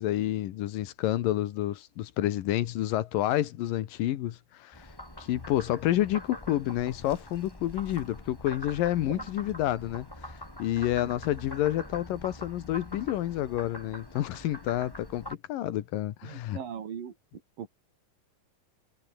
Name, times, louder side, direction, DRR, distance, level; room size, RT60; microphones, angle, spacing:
voice 1, 0.0-4.9 5.2-16.6, left 13 dB, 90° left, 2.9 m, -29 dB
Frog, 4.7-15.3, left 1 dB, 5° left, 4.7 m, -44 dB
voice 2, 16.2-17.2 17.6-17.7, right 8 dB, 85° right, 4.5 m, -39 dB
omnidirectional pair, 3.8 m